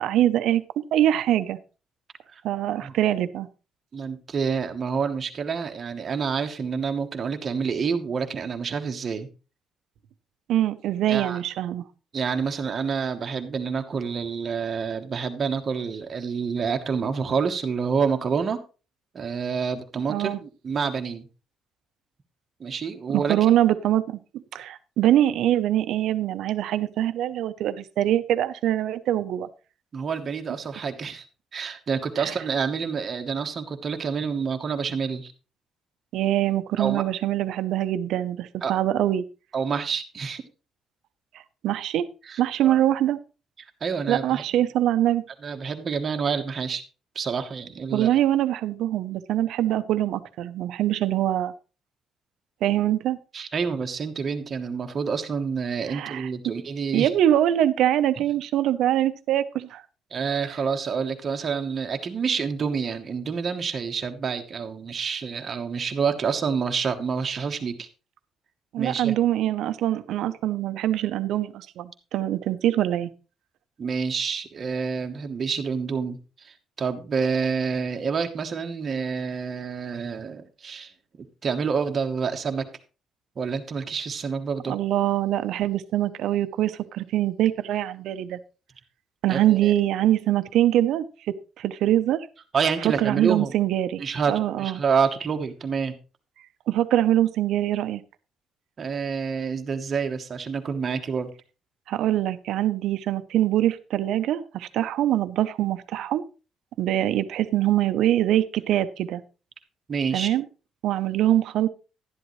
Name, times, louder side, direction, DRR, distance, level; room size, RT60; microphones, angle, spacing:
voice 1, 0.0-1.6 2.4-3.5 10.5-11.8 20.1-20.4 23.1-24.2 24.5-29.5 32.2-32.3 36.1-39.2 41.6-42.1 42.4-43.2 44.1-45.2 47.9-51.5 52.6-53.2 55.9-56.3 56.9-59.8 68.7-73.1 84.7-88.4 89.2-91.1 91.6-92.3 93.0-94.0 94.3-94.8 96.7-98.0 101.9-106.2 106.8-109.2 110.1-110.4 110.8-111.7, right 12 dB, 70° right, 12 dB, 0.7 m, -23 dB
voice 2, 3.9-9.3 11.1-11.4 12.1-18.6 19.1-21.3 22.6-23.4 29.9-31.2 31.5-35.3 36.8-37.0 38.6-38.7 39.5-40.4 42.3-42.8 43.8-44.6 45.4-46.8 47.1-48.1 53.3-57.1 58.2-58.3 60.1-67.9 68.8-69.1 73.8-80.9 81.4-82.7 83.4-84.8 89.3-89.7 92.5-93.5 94.0-95.9 98.8-101.3 109.9-110.3, right 6 dB, 30° right, 5 dB, 1.0 m, -28 dB
11.5 x 11.0 x 3.1 m, 0.33 s
cardioid pair, 180°, 0 cm